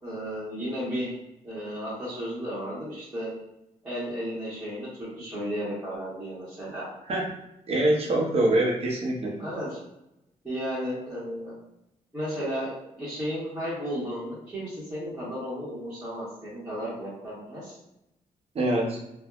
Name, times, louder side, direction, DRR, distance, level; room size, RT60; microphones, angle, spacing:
voice 1, 0.0-1.1 1.4-3.3 3.8-6.9 9.4-9.8 10.4-11.5 12.1-17.8, equal, 10° right, -11 dB, 1.1 m, -34 dB
voice 2, 7.7-9.4 18.5-19.0, right 1 dB, 45° right, -1 dB, 0.7 m, -24 dB
3.3 x 2.2 x 2.3 m, 0.85 s
cardioid pair, 120°, 15 cm